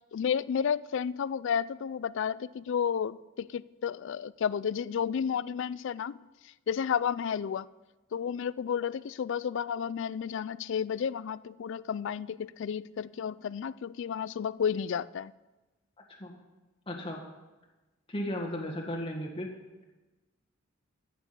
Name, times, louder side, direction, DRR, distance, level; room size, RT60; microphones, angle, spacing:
voice 1, 0.1-6.2 6.7-7.7 8.1-15.3, left 7 dB, 65° left, 0.3 m, -32 dB
voice 2, 16.9-17.2 18.1-19.5, left 1 dB, 25° left, 1.7 m, -35 dB
14.5 x 6.1 x 6.7 m
head